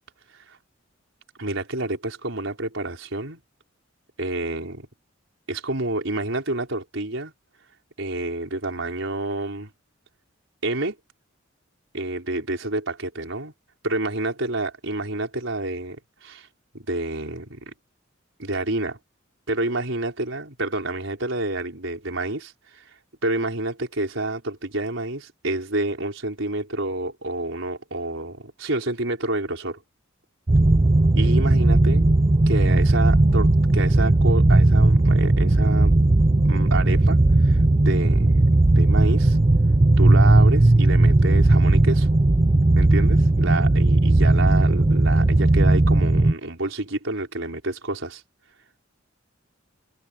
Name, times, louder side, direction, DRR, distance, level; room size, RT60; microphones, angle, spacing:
voice 1, 1.4-3.4 4.2-4.9 5.5-7.3 8.0-9.7 10.6-11.0 11.9-13.5 13.8-16.5 16.7-17.7 18.4-19.0 19.5-22.9 23.2-29.8 31.1-32.2 32.5-36.0 36.5-38.4 38.8-39.4 40.0-42.1 42.8-48.2, right 2 dB, 75° right, 4.8 m, -29 dB
sound 1, 30.5-46.3, right 2 dB, 30° right, 0.6 m, -17 dB
head